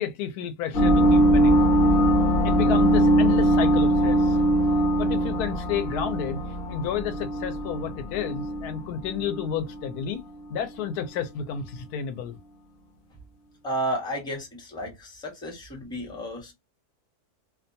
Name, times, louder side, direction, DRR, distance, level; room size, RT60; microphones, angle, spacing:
voice 1, 0.0-1.7 2.4-4.4 5.0-6.4 6.7-10.2 10.5-12.4, left 8 dB, 85° left, 1.1 m, -31 dB
sound 1, 0.7-9.9, right 1 dB, 50° left, 0.7 m, -21 dB
voice 2, 13.6-16.5, equal, 5° left, 0.7 m, -32 dB
2.6 x 2.2 x 2.6 m
omnidirectional pair, 1.6 m